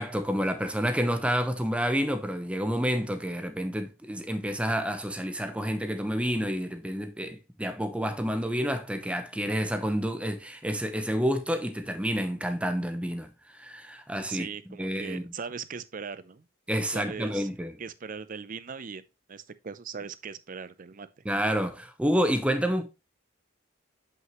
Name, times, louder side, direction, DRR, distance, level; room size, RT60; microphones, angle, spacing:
voice 1, 0.0-14.5 14.8-15.3 16.7-17.7 21.2-22.8, equal, 5° right, 0.8 m, -29 dB
voice 2, 14.3-16.5 16.8-17.5 17.8-19.0 19.3-21.2, right 6 dB, 40° right, 0.5 m, -39 dB
7.6 x 5.6 x 3.1 m
head